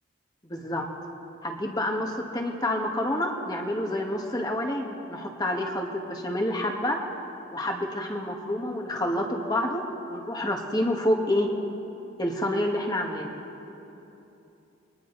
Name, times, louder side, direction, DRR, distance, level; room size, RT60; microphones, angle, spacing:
voice 1, 0.4-0.9 1.4-7.0 7.5-9.8 10.1-11.5 12.2-13.3, left 1 dB, 20° left, 2 dB, 1.7 m, -28 dB
29.5 x 22.0 x 4.1 m, 2.9 s
head